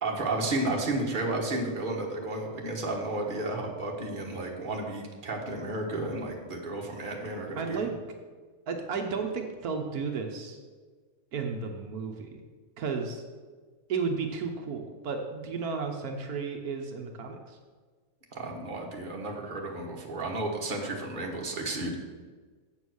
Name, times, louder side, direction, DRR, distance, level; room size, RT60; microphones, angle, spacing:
voice 1, 0.0-7.8 18.3-21.9, right 2 dB, 35° right, 0 dB, 1.5 m, -32 dB
voice 2, 7.6-7.9 8.7-10.6 11.3-12.4 12.8-13.2 13.9-17.6, right 5 dB, 80° right, 4 dB, 1.4 m, -33 dB
7.9 x 7.2 x 6.3 m, 1.4 s
omnidirectional pair, 1.6 m